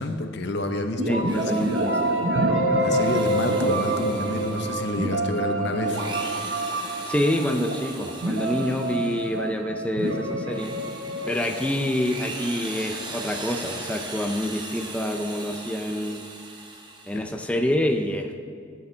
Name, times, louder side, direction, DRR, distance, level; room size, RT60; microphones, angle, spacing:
voice 1, 0.0-1.4 2.8-6.0 17.1-17.2, left 2 dB, 60° left, 6 dB, 0.8 m, -29 dB
sound 1, 1.0-12.7, right 1 dB, 70° right, 1.2 m, -27 dB
voice 2, 1.1-2.0 6.8-10.7 11.3-16.3 17.1-18.3, left 1 dB, 5° left, 4 dB, 0.4 m, -27 dB
Drill, 1.1-2.3 2.8-5.2 5.7-9.4 9.9-17.4, right 3 dB, 25° right, 1.1 m, -39 dB
14.0 x 8.0 x 3.3 m, 2.4 s
head